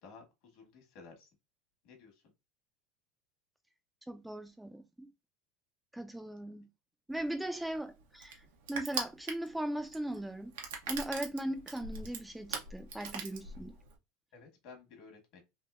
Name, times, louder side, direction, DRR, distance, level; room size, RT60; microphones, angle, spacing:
voice 1, 0.0-1.3 1.8-2.1 14.3-15.4, left 4 dB, 60° left, 1.4 m, -54 dB
voice 2, 4.1-5.1 5.9-6.7 7.1-8.4 8.7-10.5 10.9-13.7, right 1 dB, 5° right, 0.4 m, -38 dB
Crushing, 7.2-14.0, right 5 dB, 90° right, 0.8 m, -41 dB
3.5 x 2.7 x 2.4 m
supercardioid pair, 125°, 0 cm